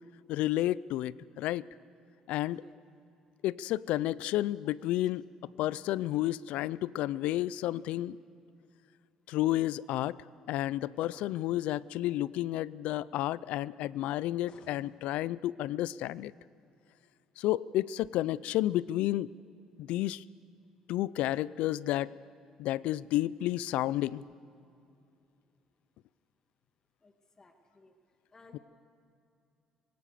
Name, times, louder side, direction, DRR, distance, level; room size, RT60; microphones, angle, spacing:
voice 1, 0.3-1.6 2.3-2.6 3.4-5.2 5.6-8.2 9.3-10.2 10.5-16.3 17.4-19.3 19.8-20.2 20.9-22.1 22.6-24.2 28.5-28.6, left 14 dB, 80° left, 20 dB, 0.4 m, -31 dB
sound 1, 10.9-11.5 14.5-14.9, left 5 dB, 65° left, 1.9 m, -56 dB
voice 2, 27.0-27.9 28.3-28.6, left 3 dB, 30° left, 4 dB, 2.2 m, -59 dB
24.5 x 18.0 x 6.8 m, 2.6 s
cardioid pair, 90°, 2 cm